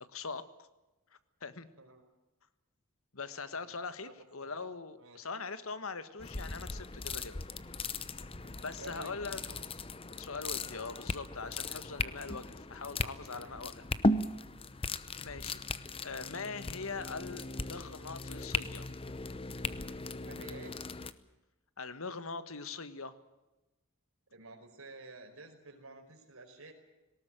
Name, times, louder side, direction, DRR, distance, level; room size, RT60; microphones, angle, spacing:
voice 1, 0.1-0.4 1.4-1.7 3.1-7.4 8.6-9.6 10.2-13.9 15.1-15.6 16.0-18.9 21.8-23.1, left 4 dB, 70° left, 12 dB, 1.5 m, -42 dB
sound 1, 6.2-21.1, left 2 dB, 25° left, 0.8 m, -37 dB
voice 2, 8.3-9.1 10.5-10.7 13.3-13.6 20.2-20.8 24.3-26.7, right 2 dB, 70° right, 4 dB, 5.0 m, -51 dB
19.5 x 18.0 x 9.1 m, 1.0 s
head